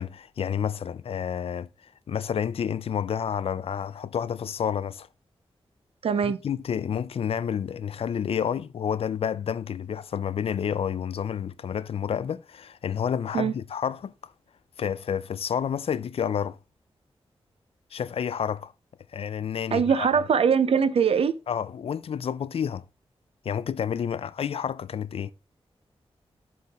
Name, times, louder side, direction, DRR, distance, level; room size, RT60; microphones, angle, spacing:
voice 1, 0.0-1.7 2.1-5.1 6.2-14.3 14.8-16.6 17.9-18.7 19.1-20.1 21.5-22.8 23.4-25.3, left 8 dB, 70° left, 0.4 m, -29 dB
voice 2, 6.0-6.4 13.3-13.5 19.7-21.4, right 6 dB, 70° right, 0.6 m, -22 dB
7.8 x 4.3 x 3.5 m
wide cardioid pair, 165°, 10 cm